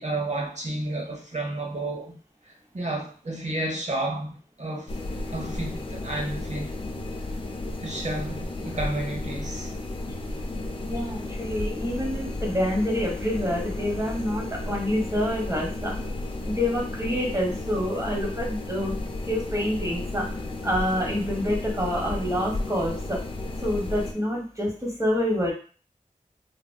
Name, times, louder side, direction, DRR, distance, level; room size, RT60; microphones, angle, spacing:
voice 1, 0.0-2.2 2.4-4.9 5.3-6.7 7.8-9.7, right 2 dB, 55° right, 0.9 m, -31 dB
Tomt kök, 4.9-24.1, left 2 dB, 40° left, 0.4 m, -33 dB
voice 2, 10.8-15.9 16.5-18.9 19.3-20.3 20.6-23.2 23.6-25.5, equal, 20° right, 1.1 m, -27 dB
3.5 x 2.4 x 2.2 m
wide cardioid pair, 50°, 14 cm